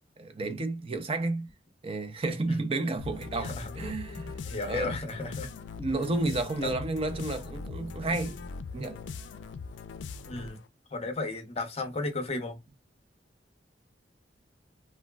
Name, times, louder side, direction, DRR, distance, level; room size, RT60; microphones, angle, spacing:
voice 1, 0.2-1.5 1.8-4.4 4.7-4.9 5.8-8.4 8.7-9.0, right 2 dB, 30° right, 0.5 m, -31 dB
sound 1, 3.0-10.7, left 4 dB, 80° left, 0.4 m, -40 dB
voice 2, 3.4-3.7 4.1-5.5 6.6-6.7 10.3-10.6 10.9-12.6, left 3 dB, 35° left, 0.6 m, -34 dB
3.4 x 2.2 x 2.2 m
head